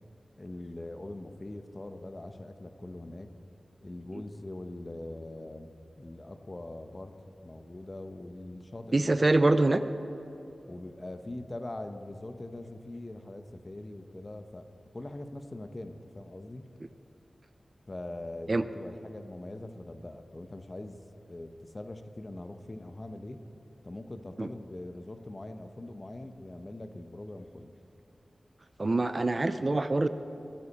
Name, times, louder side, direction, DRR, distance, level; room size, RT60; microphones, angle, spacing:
voice 1, 0.4-3.3 3.8-7.1 7.4-9.1 10.6-14.7 14.9-16.7 17.9-21.0 21.3-23.4 23.8-27.7, left 1 dB, 30° left, 8 dB, 0.8 m, -42 dB
voice 2, 8.9-9.8 18.5-18.7 24.4-24.5 28.8-30.1, right 2 dB, 35° right, 11 dB, 0.5 m, -24 dB
22.0 x 9.9 x 4.2 m, 3.0 s
wide cardioid pair, 105°, 0 cm